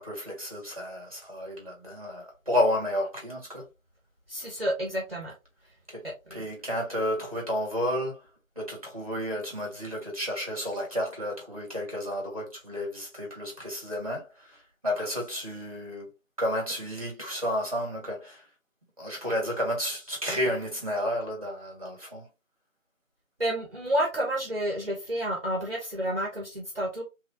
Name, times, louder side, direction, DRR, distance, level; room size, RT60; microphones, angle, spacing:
voice 1, 0.0-3.7 5.9-8.2 8.5-16.1 16.4-18.5 19.0-22.3, left 1 dB, 25° right, 1.2 m, -31 dB
voice 2, 4.3-5.3 6.0-6.5 23.4-27.0, right 1 dB, 45° right, 0.9 m, -30 dB
3.1 x 2.4 x 3.8 m
figure-of-eight pair, 170°, 41 cm